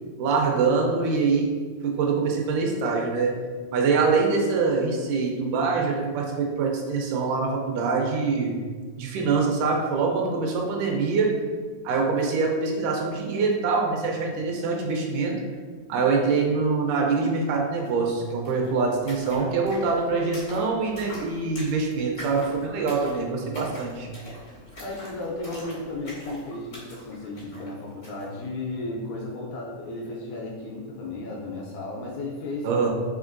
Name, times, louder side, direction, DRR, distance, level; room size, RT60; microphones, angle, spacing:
voice 1, 0.2-1.5 1.8-3.4 3.7-8.6 9.0-11.4 11.8-15.4 15.9-24.1 32.6-32.9, right 4 dB, 80° right, 1 dB, 2.1 m, -24 dB
sound 1, 17.8-17.9 18.1-28.3, equal, 60° left, 0.7 m, -43 dB
voice 2, 24.8-32.7, left 2 dB, 80° left, -3 dB, 1.8 m, -34 dB
5.2 x 3.1 x 2.5 m, 1.5 s
omnidirectional pair, 3.7 m